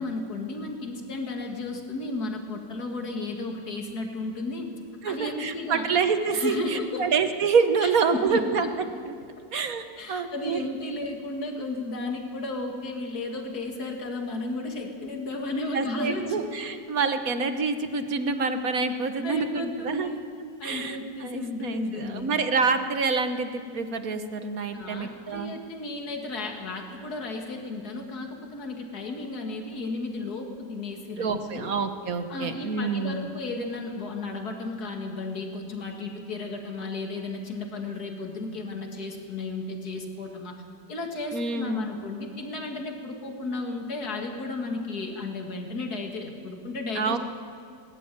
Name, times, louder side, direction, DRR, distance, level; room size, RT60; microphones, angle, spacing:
voice 1, 0.0-4.7 5.1-5.9 6.3-7.1 7.8-8.5 10.0-16.4 19.2-20.2 20.6-22.3 24.7-31.7 32.3-40.6 40.9-47.2, left 2 dB, 60° left, 3 dB, 2.8 m, -33 dB
voice 2, 5.0-8.7 9.0-9.1 9.5-10.6 15.7-20.1 20.6-25.5 31.2-33.3 41.3-41.9 46.9-47.2, right 5 dB, 55° right, 8 dB, 1.6 m, -27 dB
19.5 x 19.5 x 9.1 m, 2.2 s
omnidirectional pair, 1.9 m